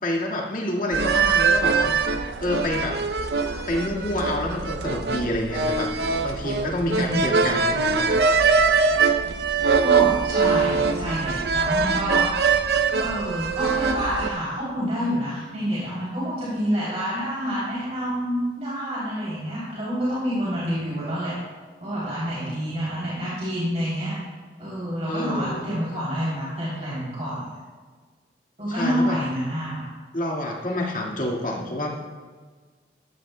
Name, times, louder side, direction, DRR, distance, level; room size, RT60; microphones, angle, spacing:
voice 1, 0.0-1.9 2.4-3.0 3.7-8.1 25.1-25.6 28.7-29.2 30.1-32.0, left 1 dB, 45° left, -1 dB, 1.8 m, -28 dB
sound 1, 0.9-14.3, right 5 dB, 65° right, 0.6 m, -22 dB
voice 2, 6.9-7.5 9.8-12.6 13.0-21.3 21.8-24.1 24.6-27.5 28.6-29.9, equal, 40° right, -9 dB, 3.2 m, -28 dB
13.5 x 13.5 x 2.2 m, 1.4 s
head